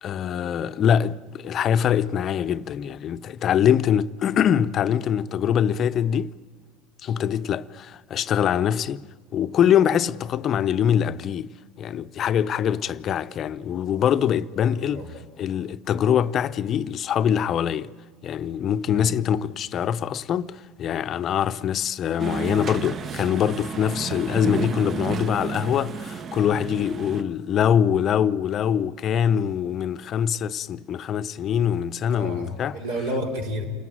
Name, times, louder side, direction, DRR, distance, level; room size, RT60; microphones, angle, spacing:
voice 1, 0.0-6.3 7.0-9.0 9.3-11.5 11.8-15.0 15.4-17.9 18.2-32.8, left 9 dB, 40° left, 0.7 m, -23 dB
voice 2, 14.9-15.2 18.9-19.1 32.1-33.6, equal, 70° right, 4.5 m, -30 dB
sound 1, 22.2-27.2, right 6 dB, 35° right, 0.9 m, -32 dB
28.5 x 18.0 x 9.3 m
hypercardioid pair, 75°, 0 cm